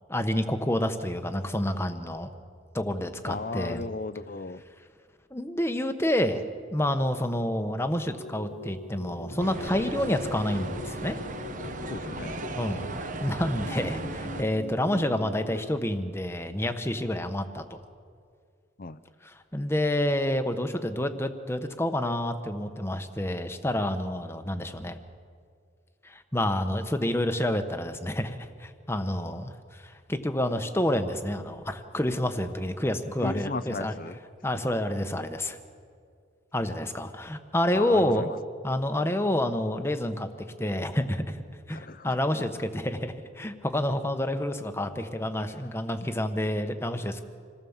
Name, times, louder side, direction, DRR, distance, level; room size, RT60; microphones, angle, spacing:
voice 1, 0.1-2.3 2.7-3.9 5.3-6.4 6.7-11.2 12.5-17.8 19.2-25.0 26.0-33.9 34.4-35.6 36.5-38.3 38.6-40.3 40.6-41.4 41.7-47.2, left 1 dB, 10° left, 8 dB, 1.0 m, -28 dB
voice 2, 3.1-4.6 11.9-12.4 18.8-19.0 33.2-34.2 37.7-38.4 41.7-42.2, left 3 dB, 45° left, 14 dB, 0.6 m, -35 dB
sound 1, 8.2-15.7, left 2 dB, 65° left, 1.5 m, -42 dB
sound 2, 9.4-14.4, right 2 dB, 40° right, 1.0 m, -37 dB
27.0 x 18.0 x 7.3 m, 2.2 s
head